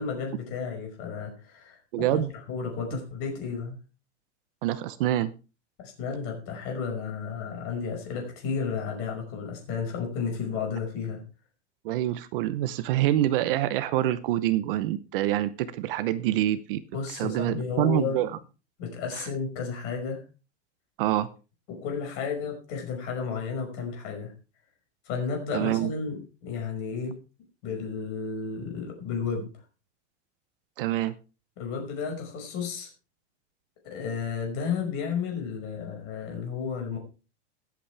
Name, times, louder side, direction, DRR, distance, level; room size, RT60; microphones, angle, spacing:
voice 1, 0.0-1.8 2.1-2.2 2.5-3.8 5.8-11.2 16.9-18.2 18.8-20.2 21.7-24.3 25.1-27.1 27.6-29.5 31.6-32.9 33.8-37.0, left 5 dB, 40° left, 2 dB, 5.5 m, -32 dB
voice 2, 1.9-2.3 2.9-3.0 4.6-5.3 11.8-16.8 17.1-18.3 19.1-19.3 21.0-21.3 25.5-25.9 30.8-31.1, right 13 dB, 50° right, 13 dB, 0.8 m, -26 dB
21.5 x 8.5 x 3.4 m, 0.32 s
supercardioid pair, 180°, 35 cm